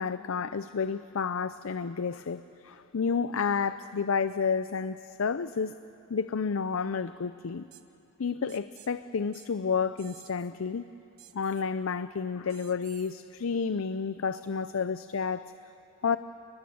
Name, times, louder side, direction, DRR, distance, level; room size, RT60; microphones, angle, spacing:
voice 1, 0.0-5.7 6.1-7.7 8.2-10.9 11.3-15.4 16.0-16.2, left 5 dB, 65° left, 13 dB, 0.5 m, -30 dB
sound 1, 7.7-7.8 8.5-8.9 9.3-9.5 10.0-10.5 11.2-11.6 12.5-13.2, right 12 dB, 90° right, 1.2 m, -53 dB
29.5 x 21.0 x 7.7 m, 2.7 s
head